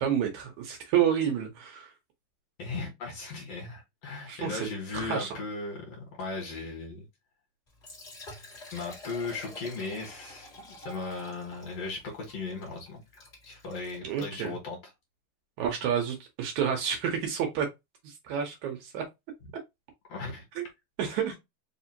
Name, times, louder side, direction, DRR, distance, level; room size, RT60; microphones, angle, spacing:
voice 1, 0.0-1.9 4.3-4.7 4.9-5.4 14.0-14.5 15.6-17.7 18.0-19.0 20.6-20.7 21.0-21.4, right 8 dB, 70° right, 2.0 m, -29 dB
voice 2, 2.6-7.1 8.7-13.0 13.4-14.8 20.1-20.4 21.0-21.2, left 3 dB, 55° left, 2.4 m, -37 dB
Liquid, 7.7-14.6, left 1 dB, 35° left, 1.1 m, -48 dB
5.0 x 2.7 x 2.8 m
omnidirectional pair, 3.8 m